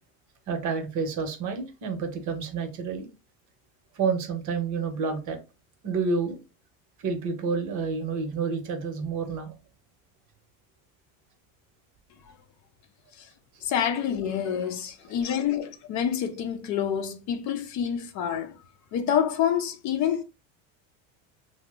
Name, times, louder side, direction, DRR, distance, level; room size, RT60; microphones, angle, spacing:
voice 1, 0.5-3.1 3.9-5.4 5.8-6.4 7.0-9.5, right 5 dB, 50° right, 0.8 m, -29 dB
voice 2, 13.6-18.5 18.9-20.2, left 9 dB, 45° left, 0.5 m, -27 dB
2.8 x 2.0 x 3.3 m
supercardioid pair, 115°, 40 cm